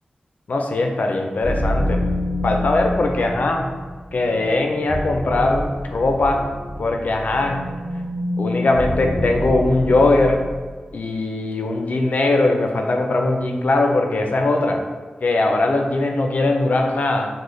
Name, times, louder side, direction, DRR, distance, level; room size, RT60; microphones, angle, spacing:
voice 1, 0.5-2.0 2.4-3.7 4.1-6.5 6.8-7.6 8.4-10.4 10.9-14.8 15.2-17.3, left 2 dB, 65° left, 3 dB, 0.3 m, -20 dB
sound 1, 1.4-10.6, left 1 dB, 20° left, 0.7 m, -27 dB
3.8 x 2.0 x 3.1 m, 1.4 s
wide cardioid pair, 105°, 3 cm